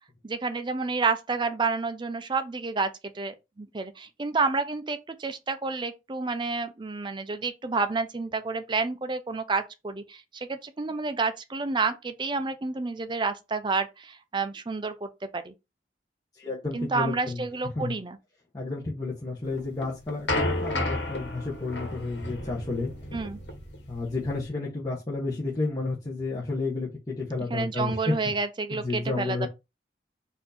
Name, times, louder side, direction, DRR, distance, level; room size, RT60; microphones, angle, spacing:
voice 1, 0.2-15.5 16.7-18.2 23.1-23.4 27.5-29.5, right 4 dB, 25° right, 0.5 m, -29 dB
voice 2, 16.3-17.4 17.7-18.0 18.5-22.9 23.9-28.2 28.7-29.5, left 3 dB, 20° left, 1.1 m, -31 dB
sound 1, 19.5-24.5, left 1 dB, 70° left, 1.5 m, -32 dB
4.4 x 2.7 x 4.1 m
head